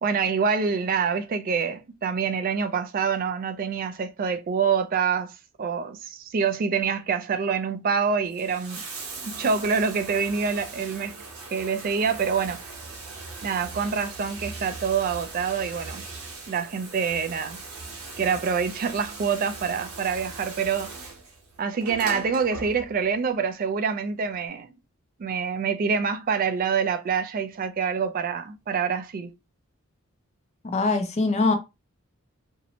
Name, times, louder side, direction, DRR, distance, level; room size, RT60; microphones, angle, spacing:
voice 1, 0.0-5.3 5.6-8.8 9.2-11.2 11.5-12.7 13.4-16.0 16.5-17.6 18.2-20.9 21.6-24.7 25.2-29.3, right 6 dB, 40° right, 0.3 m, -26 dB
Bathtub (filling or washing), 8.2-23.2 24.3-24.4, right 3 dB, 90° right, 0.9 m, -40 dB
voice 2, 30.6-31.6, left 3 dB, 30° left, 0.4 m, -22 dB
2.7 x 2.0 x 2.6 m
head